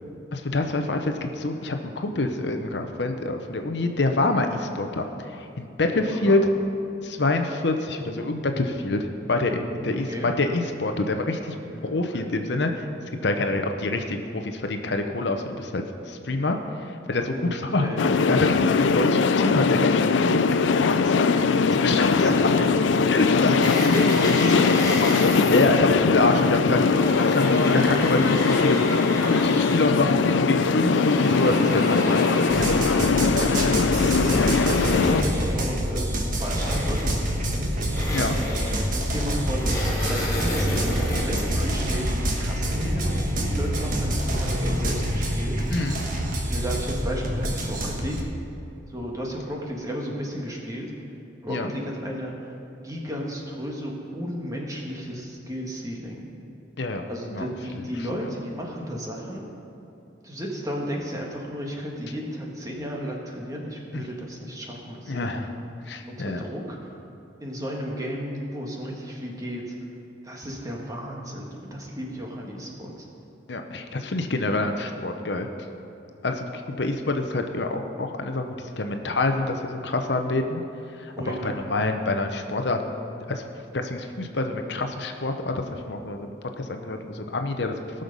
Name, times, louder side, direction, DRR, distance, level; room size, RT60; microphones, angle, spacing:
voice 1, 0.3-5.0 5.6-6.4 7.0-11.4 11.8-12.9 13.2-16.6 17.1-17.9 18.3-20.3 21.8-22.3 23.1-23.5 25.5-26.8 27.2-32.6 33.1-33.2 38.1-38.4 45.7-46.0 51.5-51.7 56.8-57.5 57.7-57.8 63.9-64.0 65.1-65.4 65.9-66.4 73.5-75.5 76.2-76.5 76.8-80.6 81.0-82.8 83.3-83.4 83.7-86.3 86.6-87.8, left 2 dB, 65° left, 5 dB, 0.8 m, -26 dB
voice 2, 5.9-6.3 9.7-10.3 11.7-12.3 17.3-18.2 21.3-22.8 23.3-25.0 27.7-27.8 31.5-32.2 32.9-33.8 34.6-37.7 38.9-45.6 46.5-48.2 48.9-50.9 51.4-52.5 52.8-56.2 57.1-59.4 60.2-65.4 66.1-66.9 67.4-69.7 70.2-73.0 81.2-81.6, equal, 20° right, -2 dB, 1.7 m, -34 dB
sound 1, 18.0-35.2, left 4 dB, 80° left, 0.4 m, -21 dB
sound 2, 23.6-25.7 26.6-29.9 30.8-33.2 33.8-35.6 36.4-37.3 37.9-39.0 39.5-41.5, left 1 dB, 20° left, 2.8 m, -31 dB
sound 3, 32.5-48.2, equal, 45° right, 1.4 m, -26 dB
18.5 x 6.6 x 5.3 m, 2.8 s
head